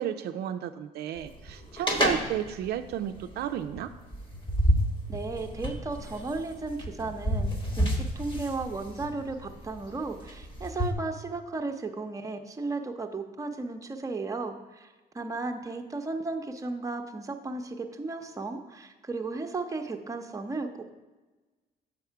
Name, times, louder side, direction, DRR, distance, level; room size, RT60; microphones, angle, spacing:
voice 1, 0.0-3.9, right 10 dB, 70° right, 8 dB, 0.4 m, -32 dB
sound 1, 1.2-10.9, equal, 30° left, 1.2 m, -30 dB
voice 2, 5.1-20.9, right 3 dB, 20° right, 4 dB, 0.7 m, -35 dB
7.2 x 4.8 x 4.6 m, 1.2 s
cardioid pair, 90°, 17 cm